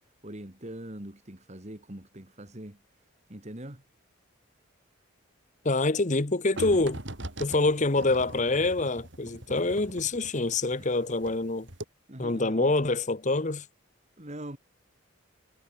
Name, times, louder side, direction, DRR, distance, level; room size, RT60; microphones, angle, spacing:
voice 1, 0.2-2.8 3.3-3.8 10.7-10.9 12.1-12.7 14.2-14.6, right 1 dB, 35° right, 2.2 m, -42 dB
voice 2, 5.6-7.0 7.4-11.7 12.2-13.6, left 2 dB, 35° left, 1.0 m, -26 dB
sound 1, 6.6-11.4 11.7-11.8, right 1 dB, 60° right, 3.9 m, -41 dB
head